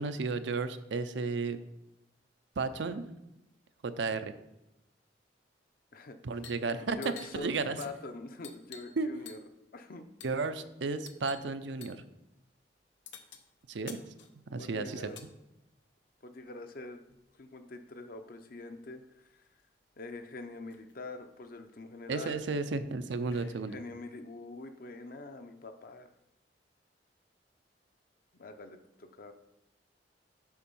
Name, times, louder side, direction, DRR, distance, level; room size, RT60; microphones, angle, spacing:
voice 1, 0.0-1.6 2.6-3.1 3.8-4.3 6.2-7.0 7.3-7.8 9.0-9.1 10.2-12.0 13.7-14.0 14.5-15.1 22.1-23.8, right 4 dB, 75° right, 10 dB, 0.5 m, -33 dB
sound 1, 6.3-6.7 6.9-9.0 9.3-9.6 10.2-10.4 11.1-11.5 11.8-12.0 13.1-15.3 16.4-17.5 18.7-18.8 19.0-19.6 20.1-20.2 20.4-20.9 21.5-23.9, left 7 dB, 90° left, 0.8 m, -53 dB
voice 2, 6.8-7.5 7.8-9.4 9.7-10.4 14.6-15.2 16.2-17.0 17.4-19.5 20.0-22.4 23.7-26.1 28.4-29.3, left 2 dB, 55° left, 8 dB, 0.7 m, -44 dB
7.0 x 5.1 x 5.5 m, 0.91 s
head